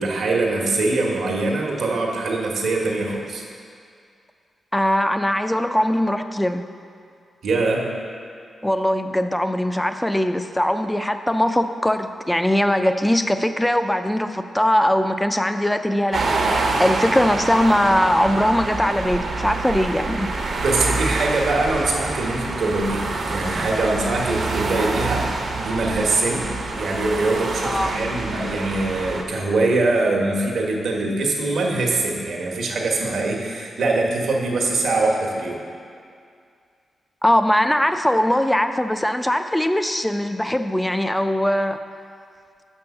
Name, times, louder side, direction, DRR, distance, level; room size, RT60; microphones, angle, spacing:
voice 1, 0.0-3.4 7.4-7.9 20.6-25.3 25.5-35.6, right 2 dB, 80° right, -1 dB, 1.2 m, -23 dB
voice 2, 4.7-6.6 8.6-20.3 27.6-28.0 37.2-41.8, left 1 dB, 10° left, 9 dB, 0.4 m, -21 dB
sound 1, 16.1-29.2, right 3 dB, 65° right, 0.8 m, -26 dB
6.1 x 5.4 x 6.8 m, 2.3 s
cardioid pair, 80°, 0 cm